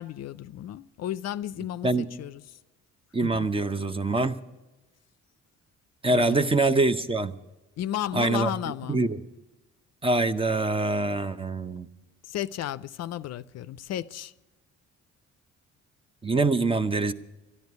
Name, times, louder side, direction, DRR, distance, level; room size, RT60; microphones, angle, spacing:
voice 1, 0.0-2.4 3.2-3.5 6.1-6.6 7.8-9.0 12.3-14.3, left 11 dB, 60° left, 0.5 m, -33 dB
voice 2, 3.1-4.4 6.0-7.4 8.1-8.5 8.9-9.2 10.0-11.9 16.2-17.1, right 3 dB, 20° right, 0.7 m, -24 dB
12.5 x 10.5 x 9.4 m
cardioid pair, 90°, 30 cm